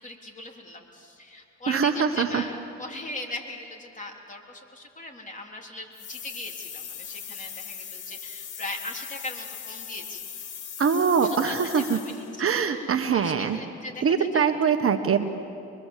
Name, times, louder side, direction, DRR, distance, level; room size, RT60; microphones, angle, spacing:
voice 1, 0.0-10.3 11.2-14.8, left 2 dB, 25° left, 1 dB, 3.6 m, -39 dB
voice 2, 1.7-2.4 10.8-12.0 12.4-13.6 14.0-15.2, right 6 dB, 45° right, 7 dB, 1.3 m, -23 dB
sound 1, 5.9-12.4, left 8 dB, 75° left, 2.6 m, -39 dB
24.5 x 22.5 x 7.4 m, 2.5 s
cardioid pair, 90°, 30 cm